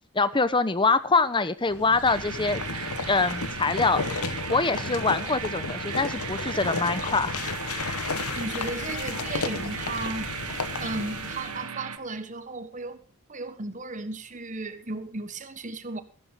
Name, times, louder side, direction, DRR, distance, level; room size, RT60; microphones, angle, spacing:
voice 1, 0.1-4.0 4.5-7.4, left 3 dB, 20° left, 0.8 m, -24 dB
sound 1, 1.7-11.6, left 4 dB, 85° left, 1.3 m, -33 dB
sound 2, 2.1-12.0, right 8 dB, 85° right, 1.3 m, -36 dB
voice 2, 8.3-10.3 10.8-13.0 13.3-16.0, right 2 dB, 35° right, 1.3 m, -35 dB
15.0 x 13.5 x 3.7 m
head